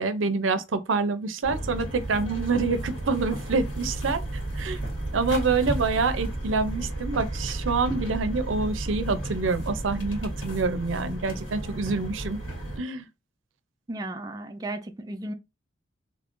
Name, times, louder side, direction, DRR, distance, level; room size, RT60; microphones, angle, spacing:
voice 1, 0.0-4.2 4.5-4.8 5.1-12.4 12.8-13.1, right 4 dB, 85° right, 0.6 m, -26 dB
sound 1, 1.4-12.8, right 1 dB, 90° left, 2.1 m, -33 dB
voice 2, 13.9-15.3, right 1 dB, 20° right, 0.4 m, -35 dB
3.2 x 2.6 x 3.6 m
head